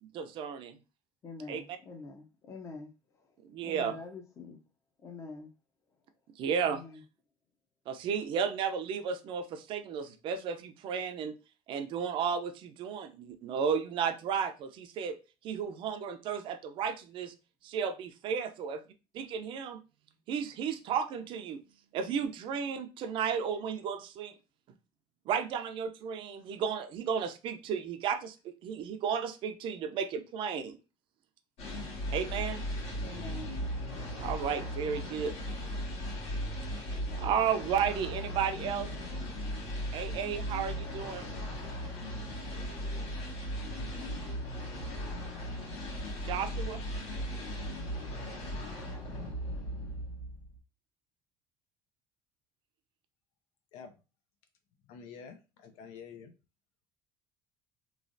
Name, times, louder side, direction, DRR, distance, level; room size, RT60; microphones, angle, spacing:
voice 1, 0.1-0.8 1.5-1.8 3.4-4.0 6.4-6.8 7.9-11.3 11.7-15.2 15.4-17.3 17.6-18.8 19.1-19.8 20.3-21.6 21.9-24.3 25.3-30.8 32.1-32.6 34.2-35.3 37.2-38.9 39.9-41.3 46.2-46.8, right 7 dB, 55° right, 0.5 m, -33 dB
voice 2, 1.2-2.9 3.6-4.6 5.0-5.5 6.6-7.0 33.0-33.5, left 3 dB, 30° left, 0.6 m, -45 dB
sound 1, 31.6-50.6, equal, 70° left, 1.5 m, -37 dB
voice 3, 54.8-56.3, left 6 dB, 90° left, 0.5 m, -48 dB
3.1 x 2.4 x 2.5 m
cardioid pair, 135°, 11 cm